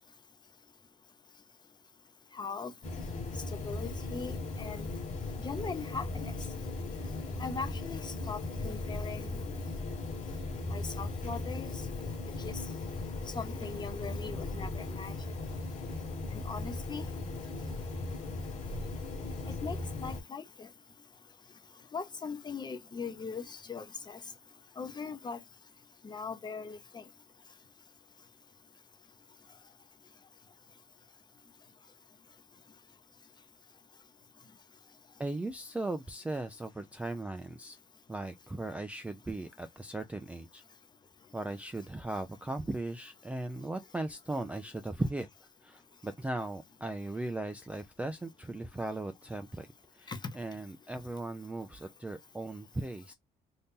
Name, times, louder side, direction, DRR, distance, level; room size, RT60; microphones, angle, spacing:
voice 1, 2.4-2.7 3.6-4.9 5.4-6.3 7.4-9.3 10.7-11.7 12.4-12.6 13.3-15.1 16.3-17.0 19.5-20.7 21.9-24.2 24.8-25.4 26.0-27.0 50.1-50.2, left 5 dB, 25° left, 0.7 m, -40 dB
sound 1, 2.8-20.2, left 2 dB, 40° left, 1.4 m, -38 dB
voice 2, 35.2-37.8 38.1-40.6 41.3-45.3 45.6-49.7 50.0-53.1, right 2 dB, 10° right, 0.3 m, -38 dB
2.7 x 2.7 x 3.6 m
cardioid pair, 110°, 17 cm